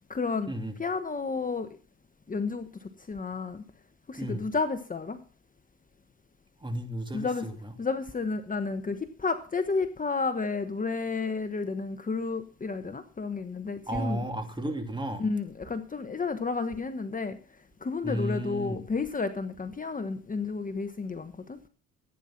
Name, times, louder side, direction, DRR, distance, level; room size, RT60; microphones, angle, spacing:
voice 1, 0.1-0.5 0.8-1.7 2.3-3.6 4.1-5.2 7.1-7.5 7.8-14.3 15.2-17.4 17.8-21.6, left 4 dB, 25° left, 1.2 m, -31 dB
voice 2, 6.6-7.7 13.9-15.3 18.0-18.8, right 1 dB, 15° right, 2.9 m, -33 dB
15.5 x 9.3 x 5.8 m
cardioid pair, 90°, 30 cm